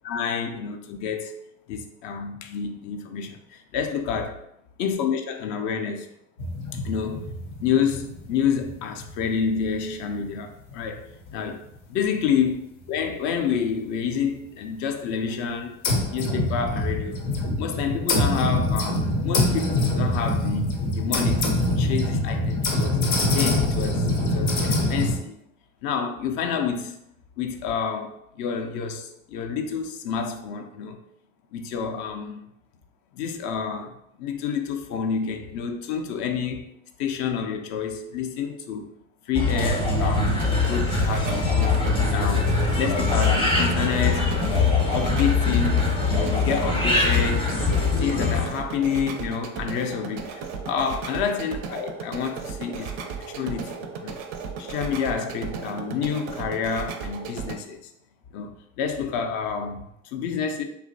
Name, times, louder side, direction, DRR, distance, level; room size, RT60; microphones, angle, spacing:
voice 1, 0.0-1.4 1.7-4.4 4.8-6.1 6.8-7.3 7.6-11.6 11.9-15.8 16.1-17.2 17.6-23.0 23.3-25.4 25.8-27.0 27.4-31.0 31.5-32.5 33.1-36.7 37.0-38.9 39.3-40.4 40.7-47.6 48.0-54.2 54.6-57.8 58.3-60.6, left 6 dB, 45° left, 0.5 m, -29 dB
sound 1, 6.4-10.4 10.7-10.8 11.3-11.4 11.8-11.9 13.0-13.1 13.5-13.6 15.8-25.2, left 1 dB, 75° left, 0.8 m, -25 dB
sound 2, 39.3-48.5, left 3 dB, 10° left, 0.7 m, -22 dB
sound 3, 40.3-57.6, right 5 dB, 40° right, 0.4 m, -35 dB
3.0 x 2.4 x 2.6 m
figure-of-eight pair, 65°, 42 cm